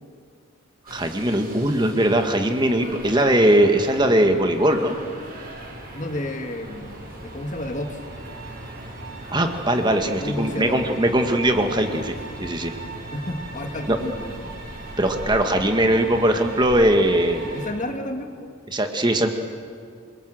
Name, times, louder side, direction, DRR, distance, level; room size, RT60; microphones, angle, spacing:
voice 1, 0.9-5.0 9.3-12.1 12.4-12.7 13.9-14.0 15.0-17.4 18.7-19.3, right 1 dB, 20° right, 5 dB, 1.6 m, -20 dB
sound 1, 0.9-17.7, right 1 dB, 45° right, 5.8 m, -38 dB
voice 2, 5.9-8.0 10.2-10.8 13.1-14.6 17.5-18.5, left 1 dB, 35° left, 5 dB, 2.0 m, -31 dB
27.0 x 23.0 x 7.8 m, 2.1 s
head